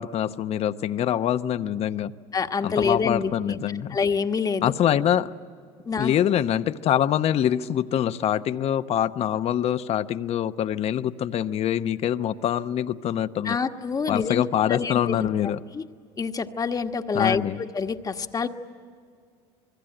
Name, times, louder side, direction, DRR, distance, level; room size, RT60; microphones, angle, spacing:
voice 1, 0.0-2.1 2.6-3.9 4.6-5.3 6.0-13.6 14.1-15.6 17.1-17.6, left 10 dB, 50° left, 12 dB, 0.9 m, -24 dB
voice 2, 2.3-3.6 3.9-4.7 5.9-6.1 13.4-14.4 14.7-15.3 15.7-15.8 16.2-18.5, left 5 dB, 25° left, 7 dB, 1.3 m, -26 dB
27.5 x 21.0 x 9.0 m, 2.1 s
supercardioid pair, 95°, 14 cm